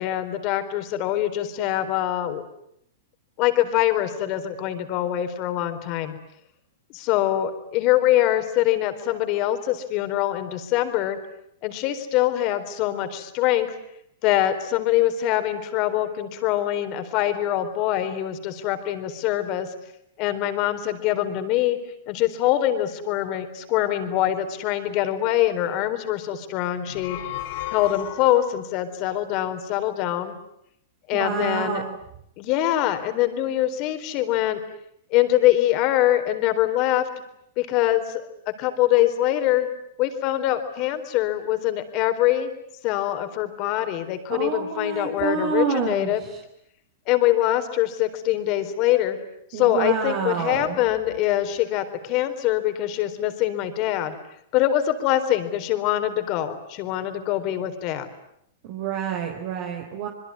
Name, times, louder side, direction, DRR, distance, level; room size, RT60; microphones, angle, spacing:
voice 1, 0.0-2.4 3.4-6.2 6.9-11.2 11.6-13.7 14.2-19.7 20.2-21.8 22.1-27.2 27.7-30.3 31.1-31.8 32.4-34.6 35.1-37.1 37.6-39.7 40.0-42.5 42.8-46.2 47.1-49.2 49.5-54.1 54.5-58.1, left 13 dB, 45° left, 9 dB, 4.2 m, -23 dB
sound 1, 26.8-28.7, left 14 dB, 60° left, 3.3 m, -34 dB
voice 2, 31.1-31.8 44.3-46.1 49.5-50.8 58.7-60.1, right 7 dB, 55° right, 3 dB, 3.9 m, -27 dB
27.0 x 22.0 x 9.7 m, 0.74 s
hypercardioid pair, 125°, 0 cm